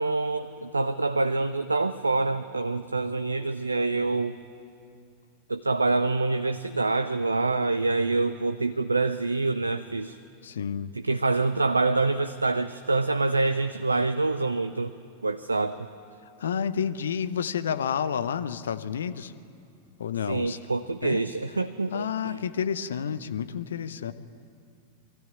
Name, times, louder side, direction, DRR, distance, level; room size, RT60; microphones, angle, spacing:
voice 1, 0.0-4.4 5.5-10.2 10.9-14.9 15.2-15.9 20.3-22.4, right 3 dB, 80° right, 11 dB, 0.5 m, -26 dB
voice 2, 10.4-10.9 16.4-19.3 20.0-20.6 21.0-21.2 21.9-24.1, left 7 dB, 65° left, 13 dB, 0.7 m, -30 dB
22.0 x 13.5 x 8.7 m, 2.5 s
figure-of-eight pair, 90°, 0 cm